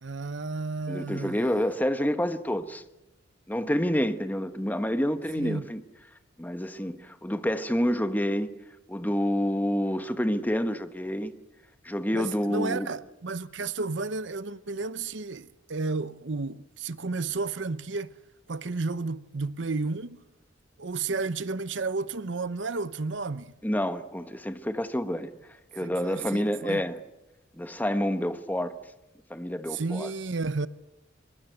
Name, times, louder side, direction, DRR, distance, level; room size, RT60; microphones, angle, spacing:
voice 1, 0.0-1.6 5.4-5.7 12.1-18.2 18.5-20.2 20.8-23.5 25.8-26.8 29.7-30.7, right 3 dB, 65° right, 0.8 m, -32 dB
voice 2, 0.9-2.8 3.5-5.8 6.4-8.5 8.9-11.3 11.8-12.9 23.6-25.3 25.7-27.0 27.6-28.7 29.3-30.1, equal, 10° left, 1.2 m, -28 dB
23.5 x 22.5 x 8.1 m
head